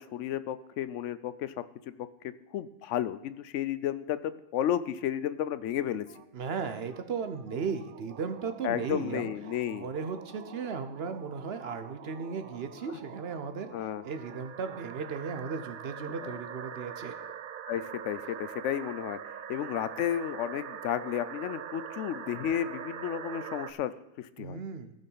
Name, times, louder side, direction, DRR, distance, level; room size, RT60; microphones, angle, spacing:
voice 1, 0.0-1.5 2.0-2.1 2.5-6.1 8.6-9.9 13.7-14.0 16.2-16.3 17.7-19.2 19.5-23.9 24.2-24.6, left 10 dB, 65° left, 14 dB, 0.8 m, -32 dB
sound 1, 6.1-23.7, right 8 dB, 70° right, 0.5 m, -44 dB
voice 2, 6.3-9.3 9.7-13.7 14.0-17.1 24.4-24.9, right 5 dB, 50° right, 9 dB, 0.9 m, -36 dB
15.0 x 5.4 x 5.5 m, 0.92 s
omnidirectional pair, 1.5 m